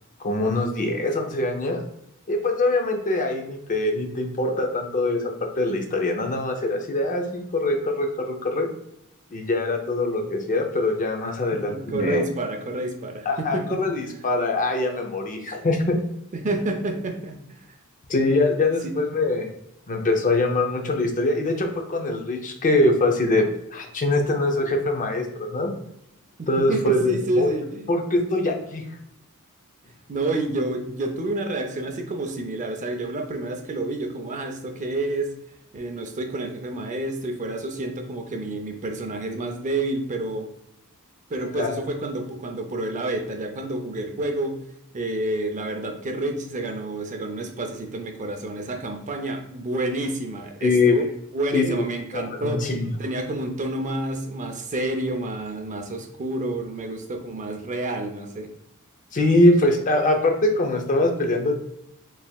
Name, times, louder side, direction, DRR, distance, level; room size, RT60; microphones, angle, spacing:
voice 1, 0.2-1.8 2.3-8.7 9.3-12.2 13.2-16.0 18.1-19.5 19.9-25.7 26.5-27.5 27.9-28.8 41.5-41.7 50.6-51.0 51.5-51.8 52.1-52.9 59.1-61.6, left 2 dB, 35° left, 3 dB, 0.6 m, -23 dB
voice 2, 11.7-14.0 16.3-17.6 18.8-18.9 26.4-27.8 30.1-35.3 35.7-40.5 41.3-44.5 44.9-51.1 51.3-52.6 53.0-58.5, right 2 dB, 35° right, 4 dB, 0.5 m, -29 dB
4.4 x 3.3 x 2.3 m, 0.77 s
head